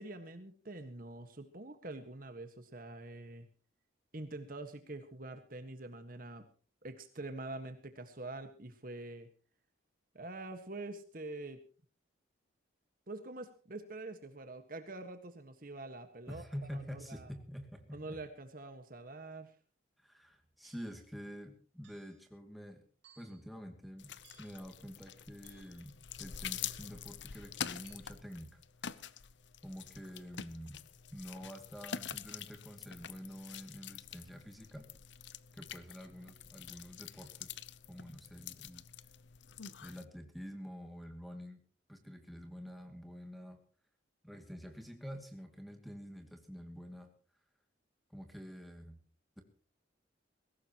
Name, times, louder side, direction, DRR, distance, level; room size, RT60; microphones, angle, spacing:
voice 1, 0.0-3.5 4.1-6.5 6.8-9.3 10.1-11.6 13.1-16.4 16.7-17.3 17.9-19.5, right 2 dB, 45° right, 8 dB, 1.6 m, -45 dB
voice 2, 16.3-18.2 20.0-22.8 23.2-24.1 24.4-25.9 26.2-28.6 29.6-30.8 31.1-34.9 35.5-37.6 37.9-38.8 39.8-41.6 41.9-43.6 44.2-47.1 48.1-49.0, equal, ahead, 3 dB, 2.4 m, -47 dB
sound 1, 20.6-21.0 21.8-22.3 23.0-23.5 24.2-24.7 25.4-25.9 26.6-27.0 27.8-28.0, right 7 dB, 65° right, 6.1 m, -64 dB
sound 2, 24.0-40.0, left 8 dB, 65° left, 0.8 m, -46 dB
21.5 x 17.0 x 3.0 m, 0.39 s
head